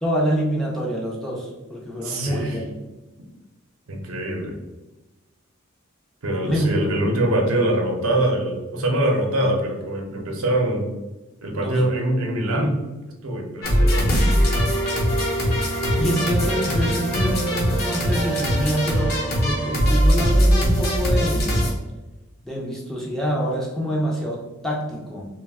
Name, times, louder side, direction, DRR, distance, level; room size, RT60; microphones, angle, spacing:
voice 1, 0.0-2.7 6.4-6.7 7.0-7.1 11.6-11.9 16.0-21.6 22.4-25.3, equal, ahead, -3 dB, 0.4 m, -26 dB
voice 2, 2.0-2.6 3.9-4.6 6.2-10.9 11.4-12.8 13.2-14.4, right 1 dB, 85° right, 1 dB, 0.6 m, -23 dB
sound 1, 13.6-21.7, equal, 45° left, 0.8 m, -21 dB
2.4 x 2.1 x 3.4 m, 1.1 s
head